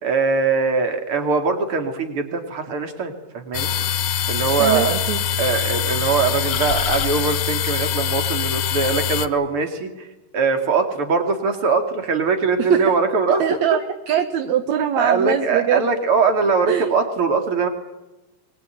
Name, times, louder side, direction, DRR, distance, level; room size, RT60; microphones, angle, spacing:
voice 1, 0.0-3.7 4.3-4.9 5.4-10.1 10.3-13.6 15.0-17.7, right 4 dB, 40° right, 5 dB, 3.0 m, -21 dB
sound 1, 3.5-9.3, left 8 dB, 80° left, 1.3 m, -23 dB
voice 2, 4.6-5.2 12.6-12.8 13.4-13.8 14.1-15.8 16.7-16.9, right 10 dB, 65° right, 8 dB, 2.0 m, -22 dB
23.5 x 20.0 x 9.1 m, 1.0 s
omnidirectional pair, 4.1 m